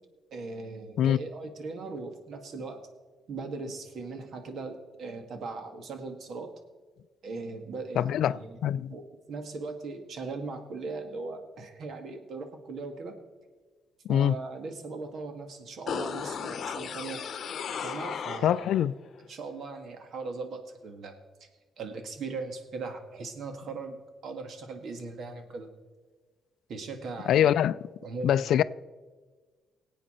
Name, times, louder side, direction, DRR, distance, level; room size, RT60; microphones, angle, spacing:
voice 1, 0.3-2.8 3.3-6.5 7.2-8.6 8.9-9.0 9.3-13.1 14.1-17.2 17.8-18.7 19.2-21.5 21.8-24.0 24.2-25.7 26.7-27.5 28.0-28.4, right 3 dB, 65° right, 1.7 m, -39 dB
voice 2, 8.0-8.4 8.6-8.9 14.1-14.3 18.4-18.9 27.3-27.8 28.2-28.6, left 10 dB, 75° left, 0.3 m, -23 dB
sound 1, 15.9-18.9 19.2-19.3, left 7 dB, 60° left, 0.8 m, -35 dB
18.5 x 8.4 x 4.3 m
cardioid pair, 90°, 0 cm